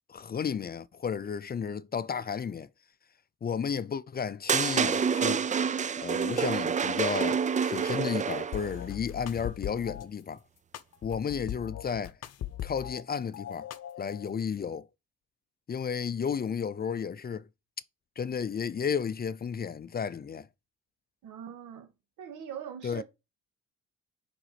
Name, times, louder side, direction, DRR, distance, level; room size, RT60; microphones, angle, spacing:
voice 1, 0.1-2.7 3.4-5.5 6.0-10.4 11.0-12.2 12.6-13.7 14.0-14.9 15.7-17.5 18.2-20.5 22.8-23.0, left 7 dB, 30° left, 0.5 m, -33 dB
sound 1, 4.5-8.7, right 6 dB, 25° right, 0.4 m, -28 dB
sound 2, 8.5-10.1 10.7-13.0 13.3-14.3, left 12 dB, 55° left, 0.8 m, -39 dB
voice 2, 21.2-21.9 22.2-23.0, right 8 dB, 85° right, 2.0 m, -41 dB
6.1 x 5.2 x 4.8 m
cardioid pair, 90°, 30 cm